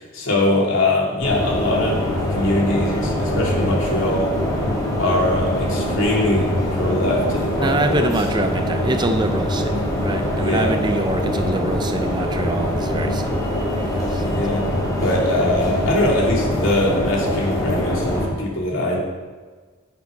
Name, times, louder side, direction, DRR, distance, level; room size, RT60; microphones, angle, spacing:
voice 1, 0.1-4.3 5.0-8.1 10.4-10.7 14.2-14.6 15.0-19.0, left 1 dB, 75° left, -2 dB, 2.9 m, -22 dB
sound 1, 1.2-18.3, left 1 dB, 20° left, 3.1 m, -23 dB
voice 2, 7.6-14.3, right 2 dB, 20° right, 7 dB, 0.6 m, -25 dB
11.0 x 7.5 x 5.2 m, 1.4 s
head